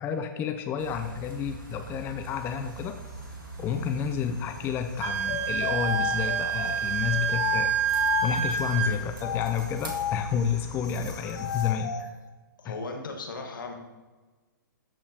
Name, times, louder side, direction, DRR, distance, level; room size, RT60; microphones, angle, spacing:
voice 1, 0.0-3.0 3.6-7.7 8.2-11.9 12.6-12.7, left 7 dB, 20° left, 7 dB, 0.4 m, -30 dB
sound 1, 0.8-11.7, right 4 dB, 85° right, 1.8 m, -42 dB
Wind instrument woodwind instrument, 5.0-8.9, right 8 dB, 40° right, 0.8 m, -28 dB
sound 2, 5.2-8.6 9.1-12.1, left 10 dB, 55° left, 0.9 m, -33 dB
voice 2, 12.6-13.7, left 3 dB, 75° left, 3 dB, 1.5 m, -37 dB
13.0 x 5.1 x 2.8 m, 1.3 s
hypercardioid pair, 125°, 11 cm